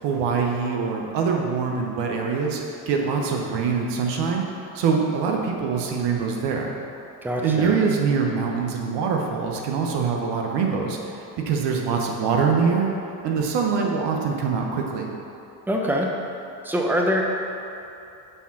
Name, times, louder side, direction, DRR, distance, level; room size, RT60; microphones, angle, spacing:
voice 1, 0.0-4.4 4.7-6.7 7.4-11.0 11.4-12.9 13.2-15.1, right 5 dB, 70° right, 1 dB, 1.1 m, -24 dB
voice 2, 7.2-7.8 15.7-16.1 16.6-17.2, equal, 5° right, -1 dB, 0.9 m, -23 dB
7.0 x 3.7 x 5.8 m, 2.8 s
supercardioid pair, 75°, 43 cm